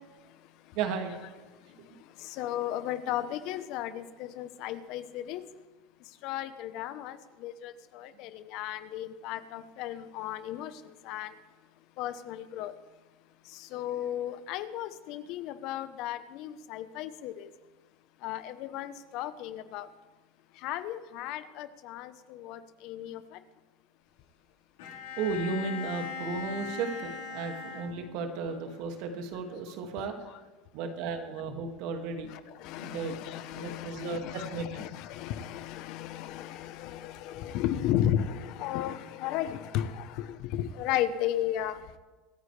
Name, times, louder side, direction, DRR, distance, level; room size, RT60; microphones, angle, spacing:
voice 1, 0.7-1.2 1.8-2.0 25.2-30.1 30.7-32.3 32.8-33.1 33.5-34.8, right 4 dB, 65° right, 4 dB, 2.2 m, -34 dB
voice 2, 2.4-5.4 6.2-7.2 7.4-10.7 11.1-11.3 12.0-12.7 13.7-17.5 18.2-19.9 20.6-23.2 32.3-41.8, left 11 dB, 60° left, 12 dB, 1.0 m, -34 dB
Bowed string instrument, 24.8-28.5, left 5 dB, 80° left, 4.4 m, -40 dB
25.0 x 9.3 x 3.4 m, 1.3 s
supercardioid pair, 105°, 0 cm